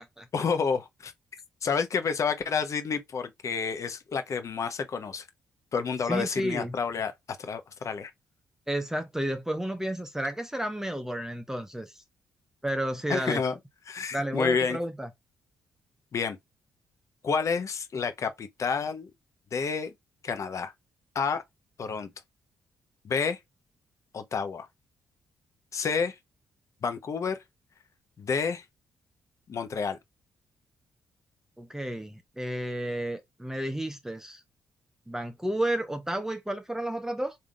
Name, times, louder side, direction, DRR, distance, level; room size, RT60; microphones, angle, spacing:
voice 1, 0.3-1.1 1.6-5.2 5.7-7.1 7.4-8.1 13.1-13.6 13.9-14.8 16.1-16.4 17.2-19.1 19.5-19.9 20.2-20.7 21.1-21.4 21.8-22.1 23.0-23.4 24.1-24.7 25.7-26.2 26.8-27.4 28.2-28.6 29.5-30.0, left 5 dB, 55° left, 0.8 m, -29 dB
voice 2, 6.1-6.7 8.7-11.9 12.6-13.4 14.1-15.1 31.6-34.4 35.1-37.3, right 1 dB, 5° right, 0.7 m, -31 dB
3.6 x 2.7 x 3.6 m
supercardioid pair, 50°, 6 cm